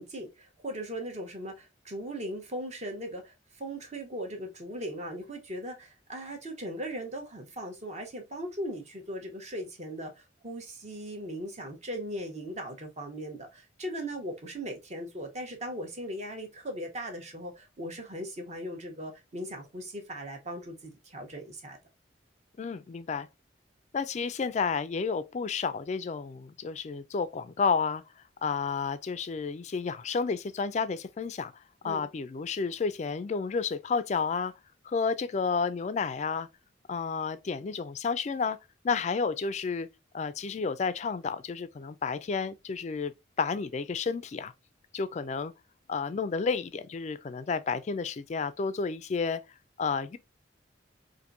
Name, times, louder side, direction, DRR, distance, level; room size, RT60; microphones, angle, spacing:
voice 1, 0.0-21.8 31.8-32.1, equal, 35° right, 0.9 m, -38 dB
voice 2, 22.6-23.3 23.9-28.0 28.4-31.5 31.8-34.5 34.9-36.5 36.9-38.6 38.8-39.9 40.1-43.1 43.4-44.5 44.9-45.5 45.9-49.4 49.8-50.2, left 5 dB, 35° left, 0.3 m, -31 dB
4.3 x 2.6 x 2.5 m
head